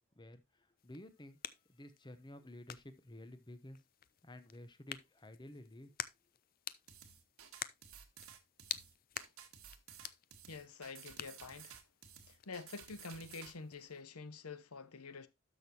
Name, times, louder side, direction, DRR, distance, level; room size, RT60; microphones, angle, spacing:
voice 1, 0.1-1.4 1.7-3.8 4.2-6.0, left 1 dB, 20° left, 1.0 m, -53 dB
sound 1, 0.8-14.0, left 11 dB, 45° left, 0.5 m, -50 dB
sound 2, 6.9-13.5, right 8 dB, 70° right, 1.6 m, -55 dB
voice 2, 10.5-11.8 12.3-15.3, left 4 dB, 85° left, 1.0 m, -48 dB
12.5 x 6.2 x 2.9 m
head